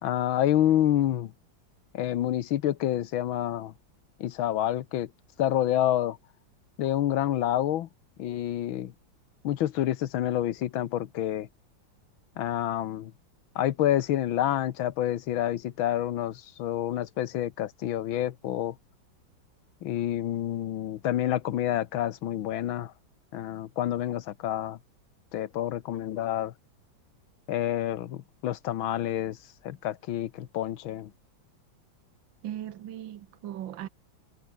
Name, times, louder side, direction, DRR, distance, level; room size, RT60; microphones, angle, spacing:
voice 1, 0.0-1.3 1.9-3.7 4.2-5.1 5.4-6.2 6.8-7.9 8.2-8.9 9.4-11.5 12.4-13.1 13.5-18.7 19.8-22.9 23.3-24.8 25.3-26.5 27.5-29.4 29.6-31.1, left 12 dB, 90° left, 1.8 m, -28 dB
voice 2, 32.4-33.9, right 11 dB, 75° right, 1.7 m, -38 dB
omnidirectional pair, 2.1 m